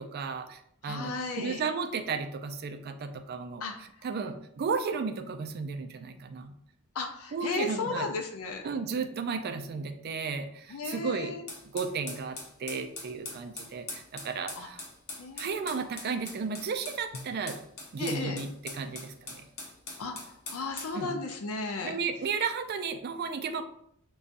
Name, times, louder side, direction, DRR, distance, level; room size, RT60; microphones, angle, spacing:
voice 1, 0.0-6.5 7.3-8.1 8.6-11.3 11.7-14.8 15.4-17.6 17.9-19.5 20.9-21.2 21.8-23.6, right 5 dB, 45° right, 8 dB, 0.3 m, -34 dB
voice 2, 0.8-1.6 3.6-3.7 6.9-8.6 10.7-11.4 14.6-14.7 15.2-15.6 18.0-18.4 20.0-20.2 20.5-22.0, left 3 dB, 70° left, 4 dB, 0.5 m, -34 dB
sound 1, 11.5-21.0, left 2 dB, 45° left, 1.0 m, -42 dB
5.2 x 2.3 x 2.5 m, 0.71 s
head